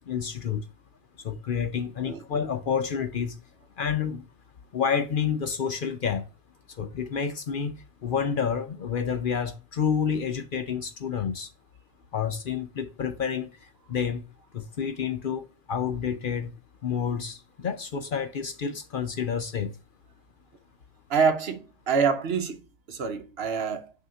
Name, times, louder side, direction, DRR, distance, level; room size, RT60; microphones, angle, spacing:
voice 1, 0.1-0.7 1.2-3.4 3.8-4.3 4.7-6.3 6.7-11.5 12.1-14.2 14.5-16.5 16.8-19.7, left 7 dB, 55° left, 0.7 m, -29 dB
voice 2, 21.1-22.6 22.9-23.9, right 6 dB, 60° right, 1.0 m, -26 dB
6.2 x 2.8 x 5.6 m
omnidirectional pair, 1.2 m